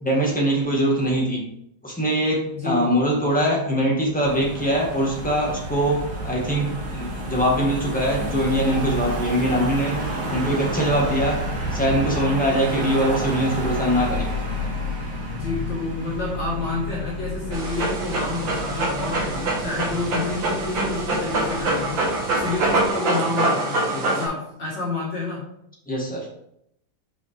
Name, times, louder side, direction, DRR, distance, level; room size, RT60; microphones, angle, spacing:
voice 1, 0.0-1.4 1.8-11.4 11.7-14.3 25.9-26.3, equal, 5° left, -3 dB, 1.2 m, -22 dB
voice 2, 2.5-2.8 15.3-25.4, left 3 dB, 55° left, -6 dB, 2.2 m, -29 dB
Car passing by / Engine, 4.2-22.9, right 1 dB, 50° right, 2.1 m, -30 dB
Dog, 17.5-24.3, right 2 dB, 65° right, 2.1 m, -25 dB
5.7 x 5.2 x 3.4 m, 0.76 s
omnidirectional pair, 2.3 m